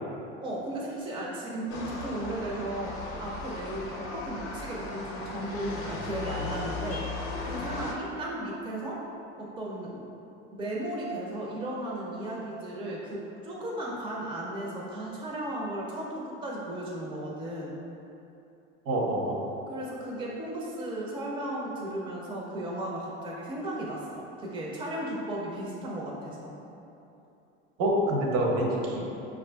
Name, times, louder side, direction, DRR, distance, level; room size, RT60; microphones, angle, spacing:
voice 1, 0.4-9.0 9.4-10.2 10.5-17.8 19.7-26.5, right 1 dB, 15° right, -4 dB, 0.5 m, -35 dB
sound 1, 1.7-7.9, left 3 dB, 45° left, 0.6 m, -37 dB
voice 2, 18.9-19.6 27.8-29.3, right 1 dB, 60° right, -2 dB, 0.8 m, -27 dB
4.6 x 2.5 x 2.2 m, 2.9 s
hypercardioid pair, 95°, 32 cm